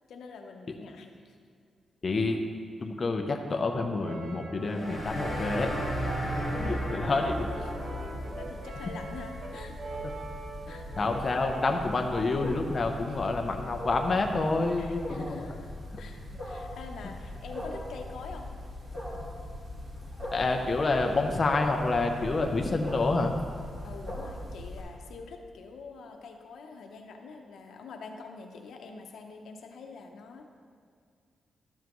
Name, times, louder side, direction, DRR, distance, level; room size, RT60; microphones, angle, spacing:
voice 1, 0.1-1.4 6.7-7.0 7.6-7.9 8.3-9.8 10.7-10.9 13.1-13.3 14.8-18.5 23.8-30.6, left 4 dB, 85° left, 3 dB, 0.8 m, -45 dB
voice 2, 2.0-2.4 2.8-5.7 6.5-7.4 11.0-15.4 15.9-16.0 20.3-23.3, left 3 dB, 30° left, 3 dB, 0.6 m, -28 dB
Brass instrument, 4.0-12.6, right 3 dB, 60° right, 0.9 m, -43 dB
sound 1, 4.6-8.4, equal, 5° right, 2.0 m, -34 dB
Wild animals, 5.0-24.8, left 1 dB, 40° right, 2.5 m, -41 dB
12.5 x 7.3 x 3.1 m, 2.1 s
wide cardioid pair, 140°, 0 cm